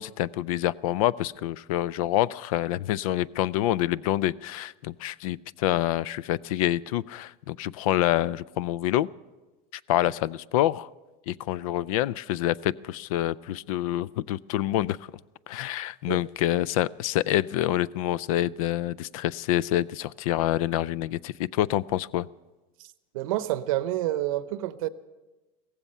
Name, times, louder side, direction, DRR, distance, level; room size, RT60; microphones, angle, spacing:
voice 1, 0.0-9.1 9.9-10.9 11.3-15.0 15.5-22.3, left 13 dB, 90° left, 0.4 m, -27 dB
voice 2, 23.1-24.9, right 14 dB, 90° right, 0.8 m, -28 dB
16.5 x 15.5 x 5.5 m
supercardioid pair, 130°, 17 cm